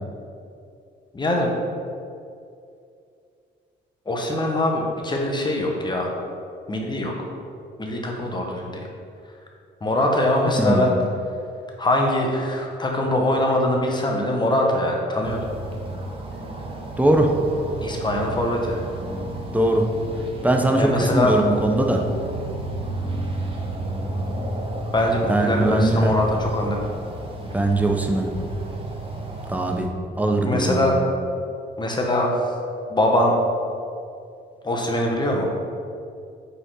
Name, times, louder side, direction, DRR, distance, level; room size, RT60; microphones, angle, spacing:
voice 1, 1.1-1.5 4.1-6.1 6.7-7.1 7.8-8.8 9.8-10.9 11.8-15.4 17.8-18.8 20.8-21.4 24.9-26.8 30.4-31.0 31.8-32.3 32.9-33.3 34.6-35.5, left 1 dB, 20° left, 0 dB, 1.3 m, -22 dB
voice 2, 10.6-10.9 17.0-17.4 19.5-19.9 20.4-22.1 25.3-26.1 27.5-28.3 29.5-29.9 30.2-31.0, right 1 dB, 5° right, 2 dB, 0.8 m, -20 dB
sound 1, 15.2-29.9, right 1 dB, 25° right, 1.1 m, -32 dB
5.6 x 4.1 x 5.7 m, 2.4 s
cardioid pair, 90°, 20 cm